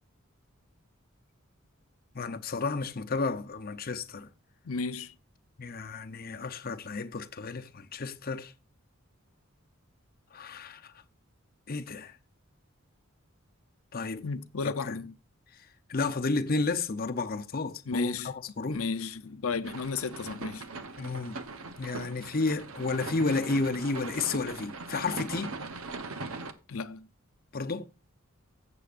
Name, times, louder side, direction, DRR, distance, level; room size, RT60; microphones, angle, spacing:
voice 1, 2.1-4.3 5.6-8.5 10.3-10.9 11.7-12.1 13.9-14.2 14.6-15.0 15.9-18.8 21.0-21.4 21.8-25.5 27.5-27.9, left 3 dB, 45° left, 0.7 m, -32 dB
voice 2, 4.6-5.1 14.2-15.1 17.9-18.3 18.7-20.6 26.7-27.1, left 4 dB, 85° left, 0.6 m, -33 dB
sound 1, 19.6-26.5, right 3 dB, 85° right, 0.9 m, -40 dB
15.0 x 7.0 x 2.5 m
head